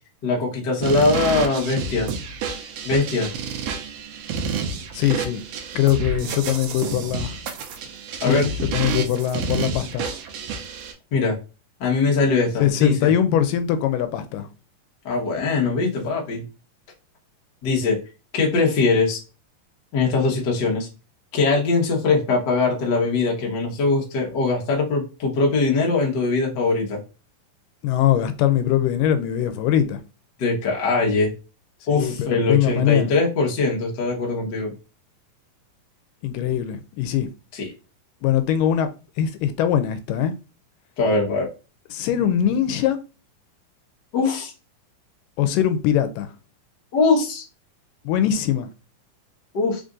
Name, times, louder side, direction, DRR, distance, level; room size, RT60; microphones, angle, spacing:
voice 1, 0.2-2.1 2.8-3.3 8.2-8.5 11.1-11.4 11.8-13.1 15.0-16.4 17.6-18.0 18.3-19.2 19.9-20.9 21.3-27.0 30.4-31.3 31.9-34.7 37.5-37.7 41.0-41.5 44.1-44.5 46.9-47.4 49.5-49.8, left 3 dB, 55° left, 1.2 m, -21 dB
sound 1, 0.8-10.9, right 5 dB, 85° right, 1.4 m, -29 dB
voice 2, 4.9-5.4 5.8-7.4 8.2-10.1 12.6-14.5 27.8-30.0 31.9-33.1 36.2-37.3 38.2-38.9 39.2-40.3 41.9-43.0 45.4-46.3 48.1-48.7, left 10 dB, 85° left, 2.1 m, -22 dB
5.0 x 2.6 x 3.6 m
omnidirectional pair, 3.8 m